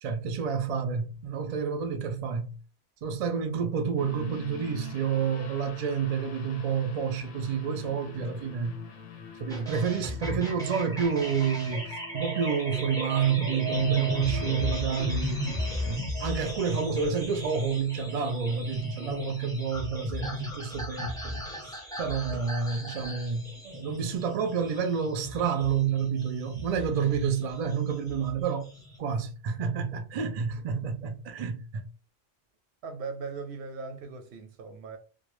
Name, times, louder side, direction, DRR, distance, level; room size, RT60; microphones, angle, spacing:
voice 1, 0.0-2.5 3.0-8.8 9.4-15.5 15.9-21.4 22.0-28.7 29.0-31.9, right 6 dB, 60° right, 0.4 m, -29 dB
sound 1, 4.0-16.0, left 5 dB, 65° left, 0.7 m, -47 dB
sound 2, 9.5-29.0, left 1 dB, 5° left, 0.5 m, -36 dB
voice 2, 32.8-35.0, right 4 dB, 80° right, 0.8 m, -39 dB
2.2 x 2.1 x 3.0 m
omnidirectional pair, 1.1 m